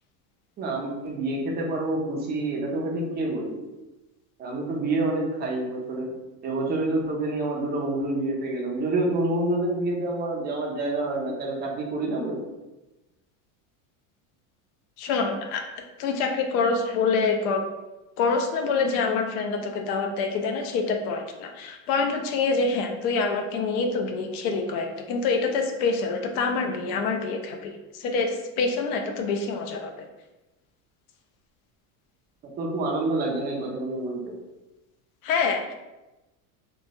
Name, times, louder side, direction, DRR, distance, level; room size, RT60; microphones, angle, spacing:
voice 1, 0.6-3.6 4.4-6.1 6.4-12.4 32.6-34.3, right 2 dB, 25° right, -1 dB, 0.4 m, -27 dB
voice 2, 15.0-15.6 16.0-17.6 18.2-30.1 35.2-35.7, left 4 dB, 75° left, 4 dB, 0.6 m, -26 dB
3.0 x 2.2 x 2.6 m, 1.0 s
supercardioid pair, 140°, 45 cm